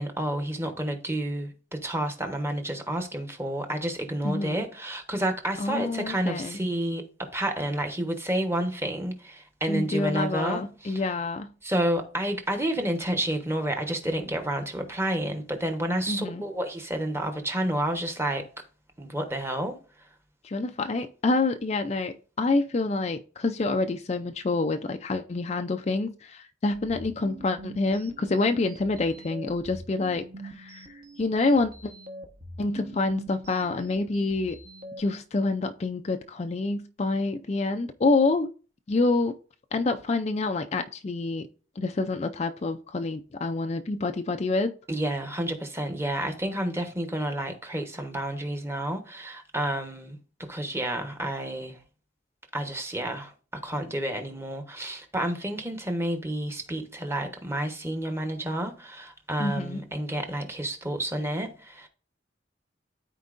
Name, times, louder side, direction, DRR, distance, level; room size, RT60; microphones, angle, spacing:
voice 1, 0.0-11.1 11.6-18.4 19.0-19.8 44.9-50.2 50.5-51.8 52.5-61.9, right 1 dB, 15° right, 1.0 m, -30 dB
voice 2, 4.2-4.6 5.6-6.6 9.7-11.5 16.1-16.4 20.4-31.9 32.6-34.6 35.0-38.5 38.9-39.3 39.7-41.5 41.8-44.7 59.4-59.8, left 3 dB, 35° left, 0.4 m, -27 dB
sound 1, 26.7-35.0, right 1 dB, 50° right, 1.1 m, -45 dB
13.0 x 4.5 x 2.5 m
head